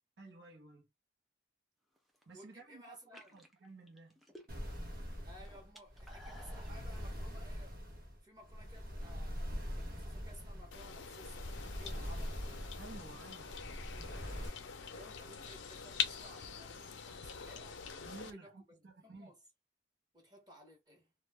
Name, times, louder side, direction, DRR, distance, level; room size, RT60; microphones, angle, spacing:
voice 1, 0.2-0.9 2.3-3.0 3.3-4.2 12.8-13.6 18.0-19.3, right 3 dB, 65° right, 0.8 m, -53 dB
sound 1, 2.0-2.4 3.0-4.8 5.1-6.8, equal, ahead, 0.4 m, -56 dB
voice 2, 2.3-3.4 5.2-7.8 8.2-9.4 9.7-12.5 14.9-17.9 18.3-19.4 20.1-21.1, equal, 20° right, 1.0 m, -58 dB
sound 2, 4.5-14.5, equal, 50° right, 1.2 m, -43 dB
sound 3, 10.7-18.3, left 7 dB, 75° left, 0.5 m, -44 dB
2.3 x 2.1 x 3.3 m
head